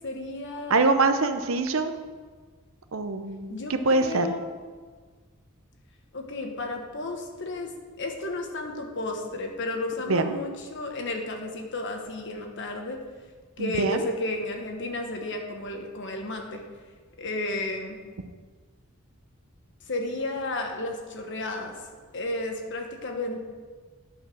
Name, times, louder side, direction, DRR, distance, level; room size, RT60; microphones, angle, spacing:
voice 1, 0.0-0.9 3.5-4.4 6.1-7.7 8.0-13.0 13.6-16.6 17.2-18.0 19.9-21.9 22.1-23.4, left 2 dB, 60° left, 3 dB, 1.4 m, -33 dB
voice 2, 0.7-1.9 2.9-4.3 10.1-10.3 13.6-14.0, right 3 dB, 70° right, 8 dB, 0.7 m, -24 dB
11.0 x 5.6 x 6.2 m, 1.5 s
head